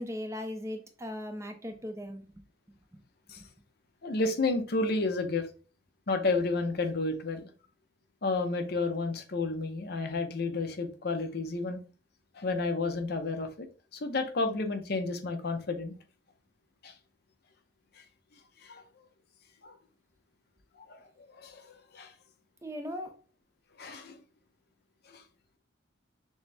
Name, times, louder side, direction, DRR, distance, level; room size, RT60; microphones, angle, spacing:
voice 1, 0.0-2.2 3.4-3.5 22.6-23.2, left 1 dB, 15° right, 0.6 m, -38 dB
voice 2, 4.0-5.5 6.1-7.5 8.2-11.8 12.3-13.7 13.9-16.0 16.8-16.9 18.0-18.1 18.6-18.8 19.6-19.7 20.8-22.1 23.8-24.2 25.1-25.2, left 3 dB, 55° left, 0.7 m, -31 dB
6.3 x 2.1 x 3.3 m
head